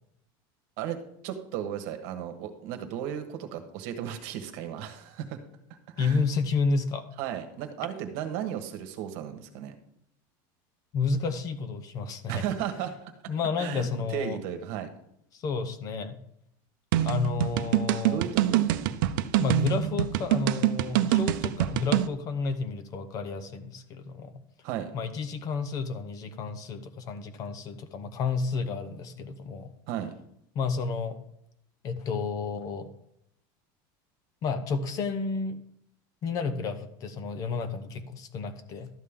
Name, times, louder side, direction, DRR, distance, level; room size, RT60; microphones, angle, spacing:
voice 1, 1.2-5.4 5.9-6.2 7.2-9.7 12.3-13.1 13.6-14.9 18.1-18.7 24.6-24.9 29.9-30.1, right 9 dB, 55° right, 7 dB, 1.3 m, -35 dB
voice 2, 6.0-7.0 10.9-12.4 13.3-14.4 15.3-16.2 17.0-18.2 19.4-24.4 24.9-29.7 30.5-31.2 31.8-32.9 34.4-35.6 36.2-38.9, left 4 dB, 35° left, 11 dB, 0.7 m, -31 dB
sound 1, 16.9-22.1, right 13 dB, 75° right, 0.6 m, -25 dB
12.0 x 8.4 x 3.7 m, 0.73 s
supercardioid pair, 165°, 11 cm